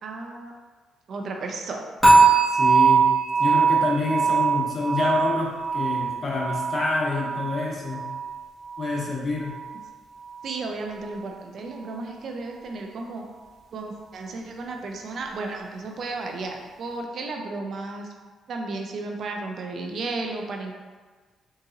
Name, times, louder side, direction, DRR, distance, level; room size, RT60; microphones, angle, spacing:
voice 1, 0.0-0.5 1.1-1.9 10.4-13.2 13.7-18.1 18.5-20.7, right 3 dB, 60° right, 2 dB, 0.4 m, -33 dB
sound 1, 2.0-9.1 9.4-9.8 10.3-10.4, right 4 dB, 10° left, 1.4 m, -21 dB
voice 2, 2.5-3.1 3.4-8.0 8.8-9.5, left 3 dB, 40° left, -2 dB, 0.8 m, -27 dB
3.9 x 2.6 x 2.5 m, 1.4 s
cardioid pair, 90°, 0 cm